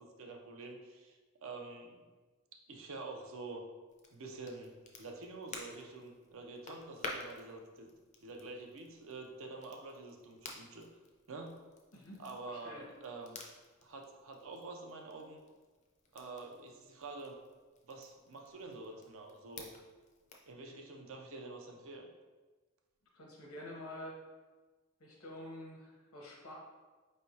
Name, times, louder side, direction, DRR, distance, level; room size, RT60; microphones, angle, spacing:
voice 1, 0.0-2.0 2.7-3.6 4.1-7.9 8.2-10.9 11.3-11.6 12.2-13.4 13.8-15.4 16.1-17.3 17.8-19.7 20.5-22.1, right 3 dB, 65° right, 2 dB, 0.6 m, -47 dB
Crackle, 3.9-20.5, left 3 dB, 35° left, 0.5 m, -52 dB
voice 2, 11.9-12.8 23.1-24.2 25.0-26.5, left 1 dB, 75° left, -1 dB, 1.0 m, -48 dB
4.5 x 3.2 x 2.7 m, 1.3 s
head